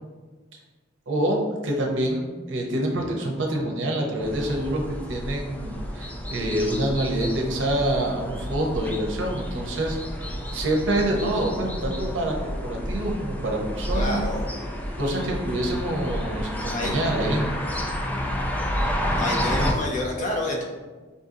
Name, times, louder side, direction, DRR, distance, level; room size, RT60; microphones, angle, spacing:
voice 1, 1.1-4.8 5.1-10.0 10.5-14.2 15.0-17.4, right 1 dB, 75° right, 1 dB, 0.7 m, -26 dB
sound 1, 4.2-19.7, equal, 10° left, 0.3 m, -30 dB
voice 2, 13.9-14.5 16.7-16.9 19.2-20.6, left 1 dB, 40° left, -2 dB, 0.7 m, -28 dB
5.1 x 2.7 x 2.5 m, 1.3 s
head